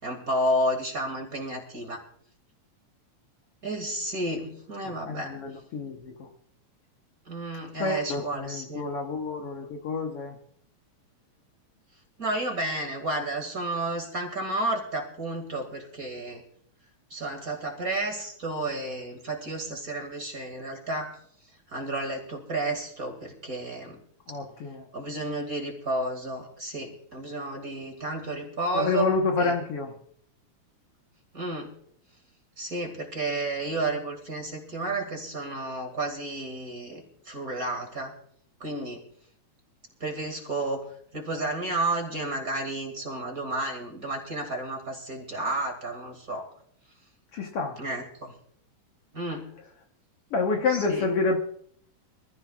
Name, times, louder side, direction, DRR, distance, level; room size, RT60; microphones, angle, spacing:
voice 1, 0.0-2.0 3.6-5.3 7.3-8.9 12.2-16.4 17.1-21.2 21.7-24.0 24.9-29.1 29.4-29.5 31.3-31.7 32.6-38.1 38.6-39.0 40.0-40.8 41.1-46.5 47.8-48.3 49.1-49.5 50.7-51.1, right 2 dB, 30° right, 3 dB, 2.5 m, -31 dB
voice 2, 4.8-6.3 7.8-10.4 24.3-24.9 28.7-29.9 47.3-47.8 50.3-51.4, left 4 dB, 60° left, 2 dB, 1.9 m, -28 dB
25.0 x 14.0 x 2.4 m, 0.65 s
omnidirectional pair, 3.3 m